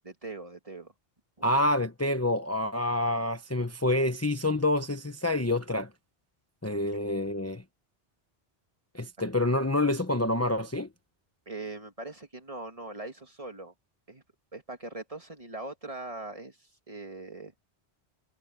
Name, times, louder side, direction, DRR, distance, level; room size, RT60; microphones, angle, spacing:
voice 1, 0.0-0.9 1.4-1.5 11.5-13.7 14.1-14.2 14.5-17.5, right 2 dB, 30° right, 2.4 m, -41 dB
voice 2, 1.4-5.9 6.6-7.6 8.9-10.9, left 1 dB, 15° left, 1.0 m, -27 dB
omnidirectional pair, 1.1 m